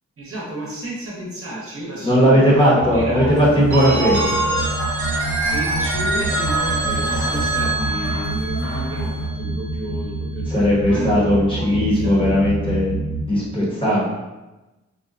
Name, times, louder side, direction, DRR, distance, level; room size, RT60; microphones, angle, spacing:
voice 1, 0.2-3.8 5.5-12.3, right 1 dB, 50° right, -5 dB, 0.8 m, -31 dB
voice 2, 2.0-4.4 10.5-13.0 13.3-14.0, equal, 20° left, -7 dB, 0.9 m, -17 dB
sound 1, 2.8-13.2, right 2 dB, 80° left, 0.8 m, -27 dB
sound 2, 3.3-9.3, equal, 45° left, 1.2 m, -37 dB
Telephone, 3.7-9.5, right 2 dB, 90° right, 0.7 m, -24 dB
3.7 x 2.2 x 2.4 m, 1.1 s
wide cardioid pair, 135°, 29 cm